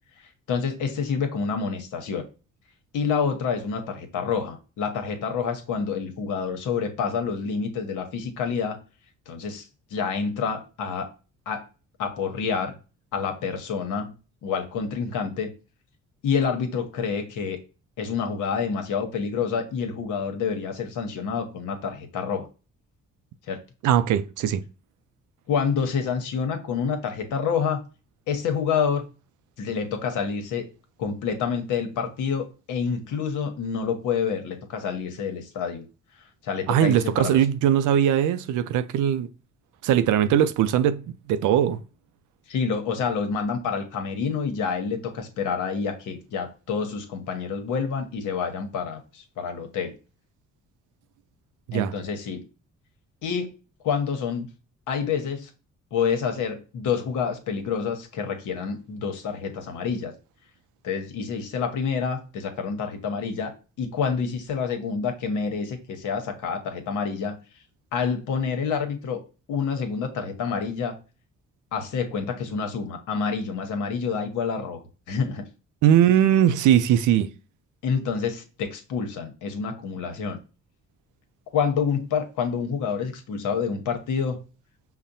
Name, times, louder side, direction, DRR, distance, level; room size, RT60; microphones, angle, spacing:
voice 1, 0.5-2.2 2.9-8.8 9.3-11.1 11.5-11.6 12.0-12.7 13.1-14.1 14.4-15.5 16.2-17.6 18.0-22.5 23.5-23.6 25.5-27.8 28.3-29.0 29.6-30.6 31.0-35.9 36.4-37.4 42.5-49.9 51.7-52.4 53.2-53.5 53.8-54.5 54.9-55.5 55.9-60.1 60.8-67.4 67.9-69.2 69.5-71.0 71.7-74.8 75.1-75.4 77.8-80.4 81.5-84.4, left 6 dB, 85° left, 1.0 m, -28 dB
voice 2, 23.8-24.6 36.7-39.3 39.8-41.8 51.7-51.9 75.8-77.3, right 10 dB, 80° right, 0.5 m, -20 dB
5.7 x 2.1 x 2.6 m
cardioid pair, 90°, 30 cm